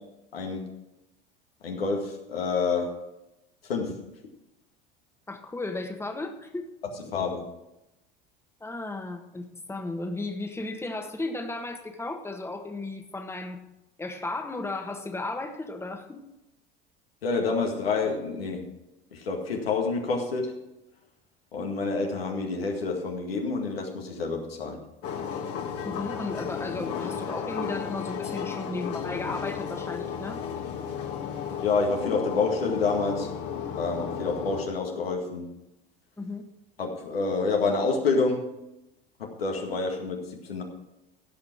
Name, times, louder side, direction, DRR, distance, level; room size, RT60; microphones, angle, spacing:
voice 1, 0.3-0.7 1.6-2.9 3.6-4.0 6.8-7.5 17.2-18.7 19.1-20.6 21.5-24.8 31.6-33.3 33.8-35.5 36.8-38.5 39.2-40.6, left 4 dB, 85° left, 1 dB, 2.0 m, -28 dB
voice 2, 5.3-6.7 8.6-13.6 14.0-16.3 25.8-30.4 36.2-36.4, left 2 dB, 10° left, 5 dB, 1.5 m, -35 dB
sound 1, 25.0-34.6, left 7 dB, 50° left, 1.8 m, -34 dB
16.0 x 5.8 x 6.1 m, 0.93 s
hypercardioid pair, 75°, 29 cm